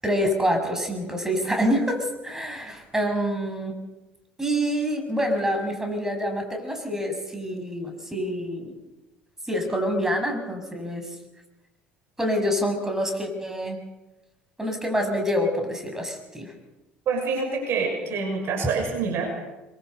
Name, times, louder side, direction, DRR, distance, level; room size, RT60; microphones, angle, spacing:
voice 1, 0.0-3.8 4.4-8.8 9.5-11.0 12.2-13.8 14.6-16.5, equal, 10° right, 4 dB, 6.9 m, -26 dB
voice 2, 17.1-19.5, right 4 dB, 50° right, 3 dB, 6.4 m, -26 dB
26.5 x 23.0 x 6.8 m, 1.0 s
figure-of-eight pair, 60°, 5 cm